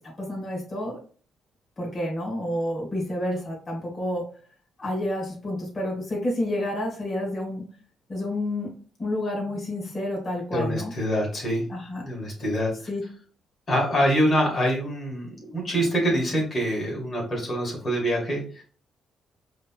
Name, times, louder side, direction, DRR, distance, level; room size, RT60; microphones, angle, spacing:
voice 1, 0.2-1.0 1.8-4.3 4.8-7.6 8.1-8.7 9.0-10.9 11.7-12.0 12.9-13.0, left 1 dB, 30° left, -2 dB, 1.8 m, -29 dB
voice 2, 10.5-11.7 12.0-12.7 13.7-18.6, equal, 45° left, -1 dB, 1.9 m, -25 dB
4.9 x 3.0 x 2.3 m, 0.42 s
cardioid pair, 90°, 0 cm